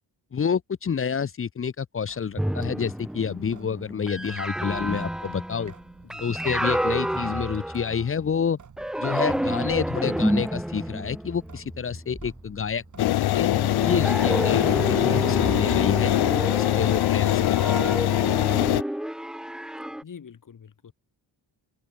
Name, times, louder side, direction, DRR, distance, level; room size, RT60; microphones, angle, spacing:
voice 1, 0.3-5.7 6.2-8.6 9.0-13.5 13.8-16.1 16.5-18.0, left 6 dB, 30° left, 0.8 m, -29 dB
Sink (filling or washing) / Drip, 2.1-14.5, right 6 dB, 45° right, 6.6 m, -53 dB
sound 1, 2.4-8.3 8.8-12.7 13.5-20.0, equal, ahead, 0.4 m, -30 dB
sound 2, 13.0-18.8, left 15 dB, 65° left, 0.6 m, -22 dB
voice 2, 20.0-20.9, left 7 dB, 50° left, 5.2 m, -45 dB
wide cardioid pair, 130°, 42 cm